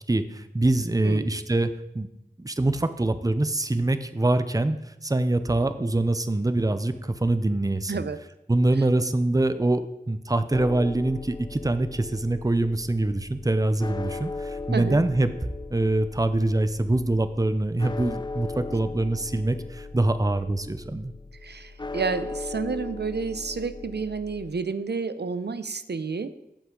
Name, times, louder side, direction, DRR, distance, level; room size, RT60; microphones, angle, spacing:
voice 1, 0.1-2.1 2.4-8.0 8.5-15.3 15.7-21.1, right 2 dB, 20° right, 11 dB, 0.6 m, -24 dB
voice 2, 7.9-8.2 8.8-8.9 14.7-15.0 21.4-26.3, right 4 dB, 85° right, 12 dB, 0.6 m, -30 dB
sound 1, 10.5-24.5, left 3 dB, 25° left, 0.4 m, -38 dB
15.5 x 5.6 x 3.8 m, 0.87 s
wide cardioid pair, 45°, 17 cm